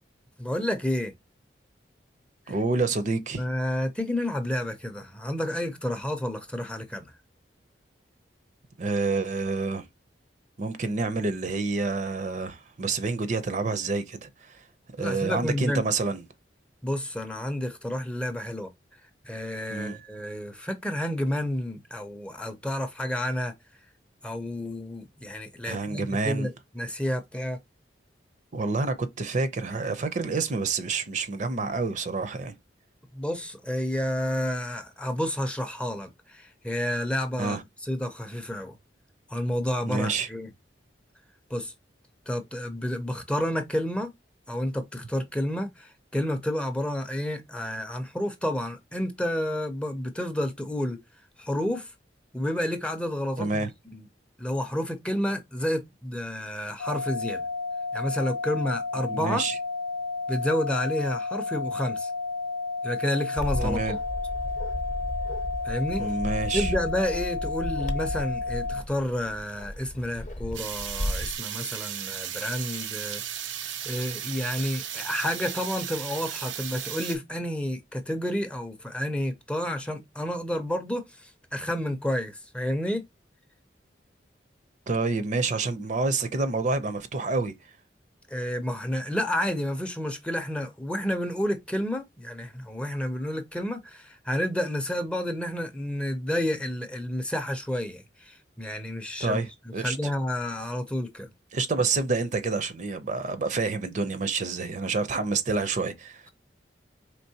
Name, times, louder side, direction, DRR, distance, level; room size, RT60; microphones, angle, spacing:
voice 1, 0.4-1.1 2.5-2.6 3.4-7.1 15.0-15.9 16.8-18.7 19.2-23.5 24.2-27.6 33.1-37.6 37.8-38.7 39.3-40.5 41.5-41.7 42.3-44.1 44.5-51.0 51.4-51.9 52.3-53.7 53.9-54.0 54.4-57.5 57.9-59.4 60.3-62.1 62.8-64.0 65.6-66.0 66.5-73.2 73.9-83.0 88.3-99.4 99.8-101.3, left 1 dB, 5° left, 0.5 m, -30 dB
voice 2, 2.5-3.4 8.8-9.8 10.6-14.6 15.0-16.2 19.7-20.0 25.6-26.5 28.5-32.5 37.4-37.6 39.9-40.3 53.4-53.7 59.1-59.6 63.6-64.0 65.9-66.7 84.9-87.5 99.2-100.1 101.5-106.3, right 3 dB, 40° right, 0.5 m, -28 dB
sound 1, 56.8-68.8, left 3 dB, 85° left, 0.4 m, -32 dB
Bark, 63.4-71.4, left 1 dB, 40° left, 0.8 m, -34 dB
sound 2, 70.5-77.2, right 10 dB, 90° right, 0.6 m, -35 dB
4.5 x 3.3 x 2.7 m
head